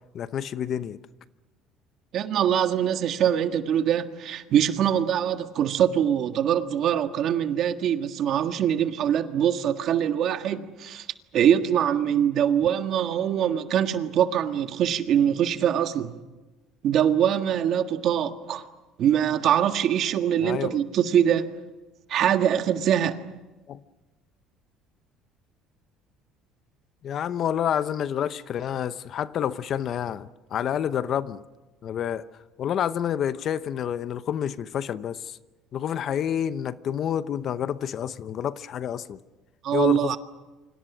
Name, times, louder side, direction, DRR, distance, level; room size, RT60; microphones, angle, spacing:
voice 1, 0.1-1.0 20.4-20.8 23.7-23.8 27.0-31.4 31.8-32.2 32.6-35.4 35.7-39.2 39.7-40.2, left 9 dB, 45° left, 0.8 m, -28 dB
voice 2, 2.1-11.1 11.3-16.2 16.8-18.6 19.0-21.5 22.1-23.2 39.6-40.2, right 9 dB, 55° right, 1.7 m, -23 dB
29.0 x 25.5 x 6.2 m
cardioid pair, 130°, 0 cm